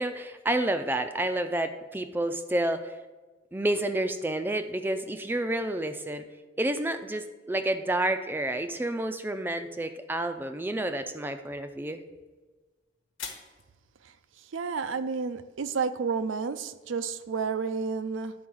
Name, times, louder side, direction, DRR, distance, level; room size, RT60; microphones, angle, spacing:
voice 1, 0.0-3.0 3.5-6.2 6.6-12.0, right 1 dB, 10° right, 8 dB, 0.4 m, -29 dB
sound 1, 11.6-17.5, left 7 dB, 90° left, 1.3 m, -50 dB
voice 2, 14.5-18.3, right 5 dB, 90° right, 12 dB, 0.5 m, -30 dB
10.0 x 4.6 x 6.1 m, 1.3 s
head